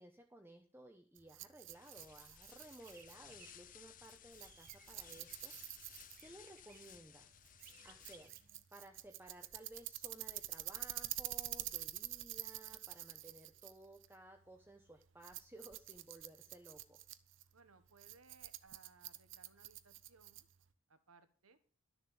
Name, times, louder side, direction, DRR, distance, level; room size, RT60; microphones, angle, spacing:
voice 1, 0.0-5.5 6.2-7.4 7.8-8.3 8.7-17.0, right 1 dB, 10° right, 3 dB, 0.9 m, -57 dB
Rattle, 1.2-20.7, right 15 dB, 60° right, 0.7 m, -48 dB
sound 1, 1.7-8.6, left 10 dB, 40° left, 0.6 m, -59 dB
sound 2, 2.0-8.6, right 6 dB, 40° right, 1.3 m, -66 dB
voice 2, 17.5-20.5 20.9-21.6, right 4 dB, 85° right, 10 dB, 1.5 m, -65 dB
12.5 x 6.9 x 7.0 m, 0.40 s
head